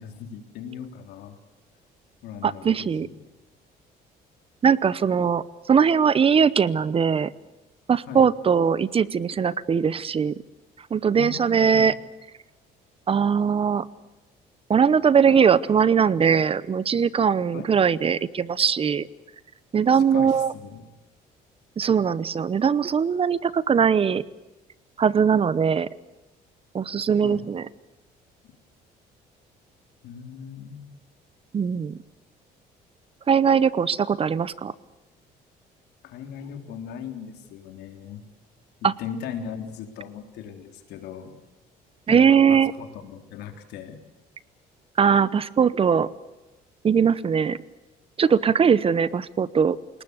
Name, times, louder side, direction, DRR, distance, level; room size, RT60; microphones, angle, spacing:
voice 1, 0.0-1.4 2.2-3.1 8.1-8.3 11.1-11.9 17.5-17.7 20.0-20.9 27.2-27.5 28.4-28.6 30.0-30.9 36.0-38.2 38.8-41.3 42.1-44.0, left 8 dB, 80° left, 5 dB, 3.7 m, -38 dB
voice 2, 2.4-3.1 4.6-7.3 7.9-10.4 10.9-11.9 13.1-13.9 14.7-19.1 19.7-20.5 21.8-24.2 25.0-25.9 26.7-27.7 31.5-32.0 33.3-34.7 38.8-38.9 42.1-42.7 45.0-46.1 46.8-47.6 48.2-49.8, right 7 dB, 35° right, 18 dB, 0.9 m, -20 dB
29.0 x 19.0 x 8.2 m, 1.1 s
cardioid pair, 110°, 17 cm